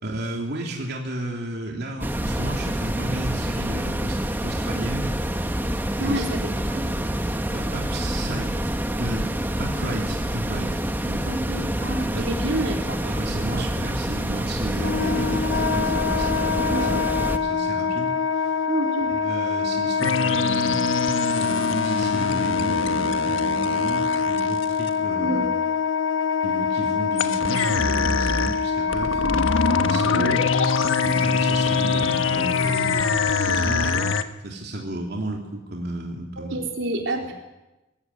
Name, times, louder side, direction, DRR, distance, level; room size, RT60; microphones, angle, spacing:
voice 1, 0.0-5.1 6.0-6.2 7.5-11.3 12.1-12.3 13.0-17.1 17.4-18.1 19.1-20.8 21.4-25.5 26.4-29.2 29.7-30.3 31.0-34.1 34.4-36.6 37.2-37.3, right 1 dB, 55° right, -1 dB, 3.3 m, -33 dB
sound 1, 2.0-17.4, right 1 dB, 10° right, 1.2 m, -27 dB
voice 2, 6.0-6.8 11.3-13.6 16.7-17.0 18.7-19.1 25.2-25.5 30.1-30.4 36.4-37.3, right 1 dB, 75° right, 1 dB, 4.0 m, -29 dB
Wind instrument woodwind instrument, 14.7-34.2, left 6 dB, 65° left, 0.7 m, -25 dB
sound 2, 20.0-24.9 27.2-34.2, left 4 dB, 85° left, 1.3 m, -25 dB
21.5 x 16.0 x 9.7 m, 1.0 s
head